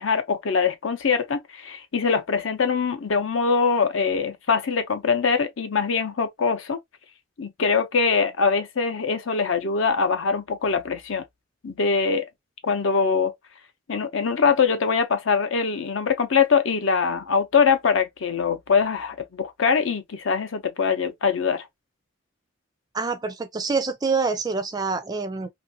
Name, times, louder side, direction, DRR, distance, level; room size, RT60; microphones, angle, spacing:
voice 1, 0.0-6.8 7.4-11.2 11.6-12.3 12.6-13.3 13.9-21.7, left 5 dB, 65° left, 0.6 m, -23 dB
voice 2, 22.9-25.5, right 4 dB, 20° right, 0.3 m, -26 dB
2.5 x 2.5 x 2.7 m
head